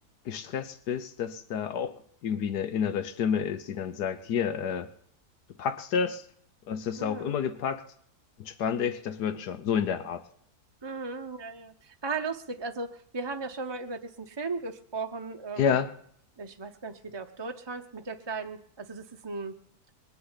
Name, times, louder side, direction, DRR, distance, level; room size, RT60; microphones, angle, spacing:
voice 1, 0.2-2.0 2.2-4.9 5.6-6.2 6.7-7.8 8.4-10.2 15.6-15.9, left 7 dB, 85° left, 12 dB, 1.6 m, -29 dB
voice 2, 7.0-7.4 10.8-15.8 16.4-19.6, right 4 dB, 25° right, 5 dB, 0.5 m, -36 dB
21.0 x 7.1 x 9.8 m, 0.64 s
omnidirectional pair, 1.7 m